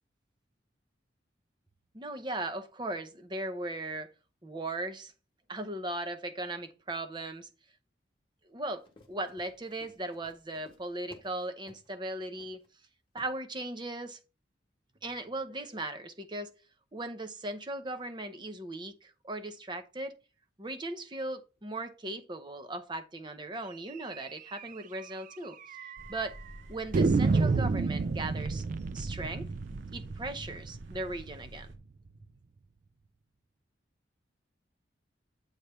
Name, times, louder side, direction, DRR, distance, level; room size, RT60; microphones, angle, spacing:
voice 1, 1.9-4.1 4.4-5.1 5.5-7.5 8.5-12.6 13.1-14.2 15.0-16.5 16.9-20.1 20.6-25.8 26.1-26.3 26.7-28.6 28.9-29.5 29.9-31.7, right 2 dB, 25° right, 0.7 m, -38 dB
Run, 8.7-11.4 11.7-11.9 12.4-12.7 13.2-13.3, left 2 dB, 25° left, 1.3 m, -57 dB
sound 1, 24.1-24.3 24.6-24.7 25.0-25.1 25.7-26.2 26.9-31.7, right 4 dB, 45° right, 0.3 m, -30 dB
sound 2, 26.0-31.8, right 1 dB, 85° right, 0.9 m, -49 dB
8.1 x 3.2 x 5.4 m
head